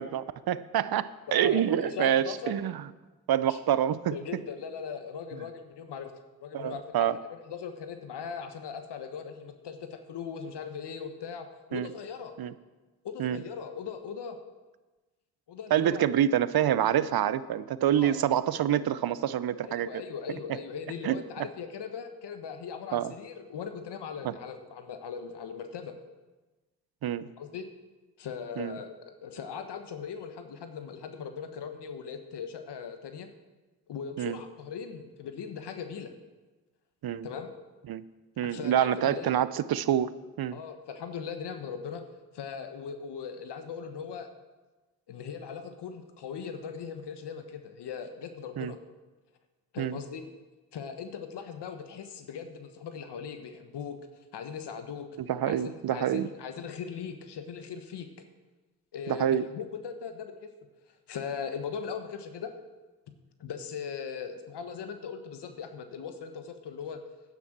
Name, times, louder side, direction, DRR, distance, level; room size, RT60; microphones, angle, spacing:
voice 1, 0.0-2.8 3.3-4.2 6.5-7.2 11.7-11.9 12.4-12.5 13.2-13.4 15.7-19.9 21.0-21.2 22.9-23.1 24.2-24.3 27.0-27.3 28.6-28.8 34.2-34.4 37.0-37.3 37.9-38.0 38.4-40.1 40.4-40.6 48.6-48.7 49.8-50.0 55.2-56.3 59.1-59.4, right 10 dB, 60° right, 16 dB, 0.7 m, -27 dB
voice 2, 1.3-2.5 3.5-3.6 4.1-6.1 6.4-12.4 13.0-14.4 15.5-16.0 17.9-18.2 19.6-26.0 27.4-27.7 28.2-33.3 33.9-36.1 37.2-37.5 38.4-39.3 40.5-42.0 42.3-44.3 45.1-48.8 49.7-50.3 50.7-54.0 54.3-55.1 55.5-58.1 58.9-60.5 61.1-62.5 63.4-67.0, left 6 dB, 70° left, 7 dB, 1.3 m, -39 dB
10.5 x 9.8 x 6.1 m, 1.2 s
hypercardioid pair, 40°, 43 cm